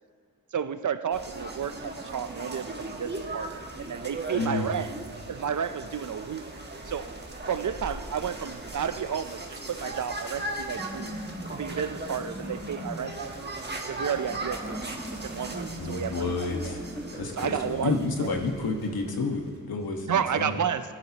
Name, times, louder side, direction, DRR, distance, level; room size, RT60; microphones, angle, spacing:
voice 1, 0.5-4.9 5.3-6.4 6.9-7.1 7.5-11.1 11.5-13.5 13.8-16.3 16.6-16.8 17.4-17.9 18.2-18.3 20.1-20.8, right 8 dB, 55° right, 12 dB, 0.7 m, -32 dB
sound 1, 1.1-19.6, right 2 dB, 30° right, 1.4 m, -38 dB
voice 2, 4.3-4.7 15.8-16.8 17.1-20.6, left 3 dB, 75° left, 2 dB, 1.5 m, -30 dB
sound 2, 10.6-18.4, equal, 5° left, 1.5 m, -41 dB
17.0 x 11.5 x 3.0 m, 2.2 s
cardioid pair, 60°, 37 cm